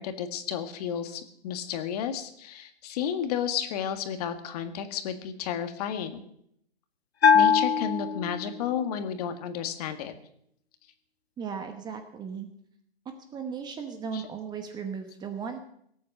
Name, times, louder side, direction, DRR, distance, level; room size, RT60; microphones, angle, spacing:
voice 1, 0.0-6.2 7.3-10.1 14.1-14.3, left 8 dB, 40° left, 9 dB, 1.7 m, -32 dB
Bell, 7.2-8.8, left 6 dB, 80° left, 1.4 m, -22 dB
voice 2, 11.4-12.5 13.3-15.6, right 6 dB, 15° right, 7 dB, 1.0 m, -36 dB
18.0 x 8.5 x 7.0 m, 0.71 s
hypercardioid pair, 140°, 31 cm